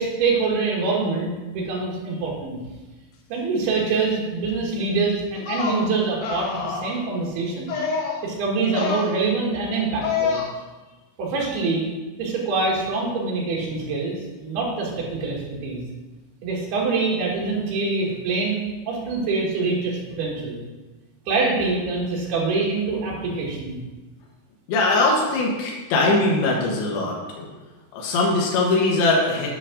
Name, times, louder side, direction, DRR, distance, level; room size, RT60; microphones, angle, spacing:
voice 1, 0.0-2.6 3.3-7.7 8.2-10.4 11.2-11.9 12.2-15.8 16.4-20.6 21.3-23.8, right 3 dB, 70° right, -3 dB, 3.4 m, -25 dB
sound 1, 5.3-5.8 6.2-7.0 7.7-8.2 8.6-9.1 10.0-10.5, left 5 dB, 70° left, 3.5 m, -26 dB
voice 2, 24.7-27.5 27.9-29.5, left 2 dB, 90° left, -3 dB, 3.5 m, -21 dB
11.0 x 5.9 x 3.8 m, 1.2 s
omnidirectional pair, 5.0 m